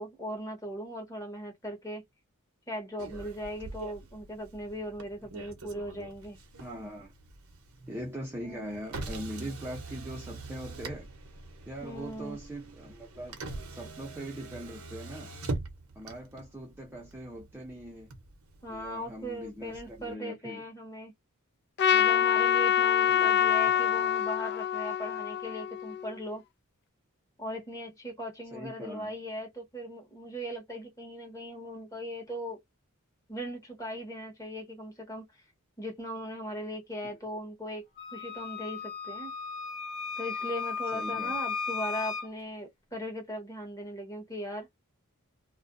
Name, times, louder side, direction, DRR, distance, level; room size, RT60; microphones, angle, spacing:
voice 1, 0.0-2.0 2.7-6.4 8.4-8.8 11.8-12.4 18.6-21.1 21.9-26.4 27.4-32.6 33.3-35.2 35.8-37.8 38.1-39.3 40.2-44.7, equal, 15° left, 1.0 m, -39 dB
Motor vehicle (road), 3.0-20.1, right 2 dB, 65° right, 0.7 m, -43 dB
voice 2, 6.6-7.1 7.9-11.1 11.7-13.4 13.7-15.3 16.0-18.1 18.7-20.6 23.1-23.3 23.7-24.1 28.5-29.1 40.9-41.4, equal, 10° right, 0.5 m, -41 dB
Trumpet, 21.8-26.2, left 9 dB, 50° left, 0.3 m, -25 dB
Wind instrument woodwind instrument, 38.0-42.3, left 5 dB, 65° left, 1.2 m, -35 dB
2.4 x 2.1 x 2.4 m
head